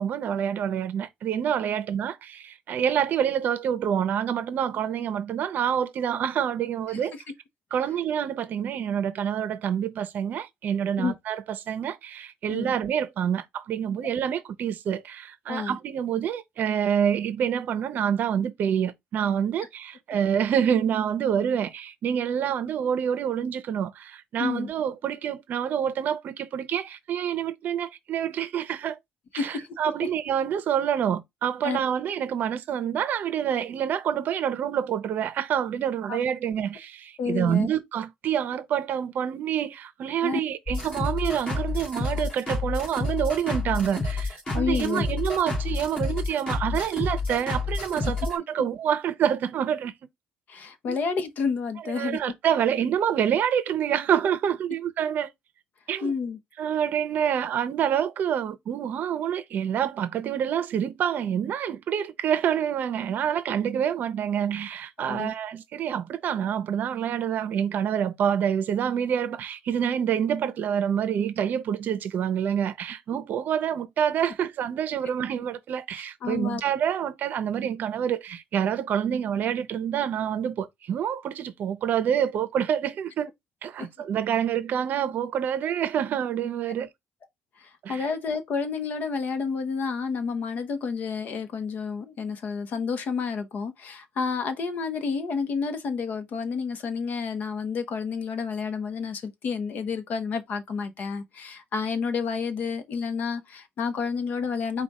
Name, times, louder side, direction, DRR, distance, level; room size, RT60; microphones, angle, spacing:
voice 1, 0.0-7.1 7.7-29.0 29.3-49.9 50.9-51.0 51.8-55.3 55.9-56.1 56.6-83.3 83.6-86.9 87.8-88.1, right 9 dB, 50° right, 0.7 m, -27 dB
voice 2, 24.4-24.7 29.4-29.7 30.0-30.1 31.6-31.8 36.1-36.2 37.2-37.7 40.2-40.4 44.5-45.0 50.5-52.2 56.0-56.4 65.0-65.3 76.2-76.6 83.8-83.9 87.6-104.8, left 5 dB, 45° left, 0.9 m, -30 dB
sound 1, 40.7-48.4, left 3 dB, 25° left, 2.7 m, -29 dB
5.0 x 2.3 x 4.1 m
cardioid pair, 155°, 4 cm